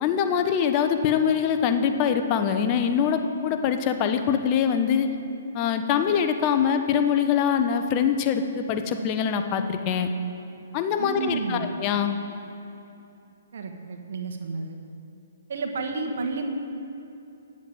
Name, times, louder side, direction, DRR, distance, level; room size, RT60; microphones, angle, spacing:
voice 1, 0.0-5.1 5.5-10.1 10.7-12.2, left 7 dB, 30° left, 7 dB, 0.8 m, -23 dB
voice 2, 11.0-11.7 13.5-14.8 15.5-16.5, right 4 dB, 65° right, 4 dB, 1.4 m, -31 dB
9.8 x 7.6 x 7.8 m, 2.8 s
hypercardioid pair, 140°, 0 cm